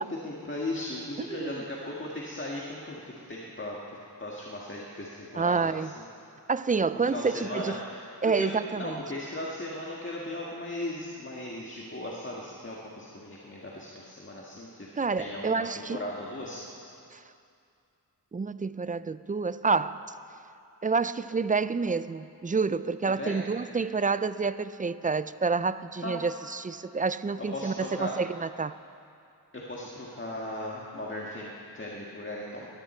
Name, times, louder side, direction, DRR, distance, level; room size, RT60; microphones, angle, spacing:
voice 1, 0.0-3.0 3.3-6.0 7.0-14.9 15.2-16.6 23.1-23.5 26.0-26.1 27.5-28.1 29.5-32.7, left 1 dB, 30° left, -4 dB, 1.8 m, -37 dB
voice 2, 1.2-1.6 5.4-5.9 6.5-7.8 8.2-9.0 15.0-16.0 17.1-17.2 18.3-20.0 20.8-28.8, right 4 dB, 20° right, 14 dB, 0.4 m, -28 dB
21.0 x 14.5 x 4.4 m, 2.6 s
wide cardioid pair, 85°, 41 cm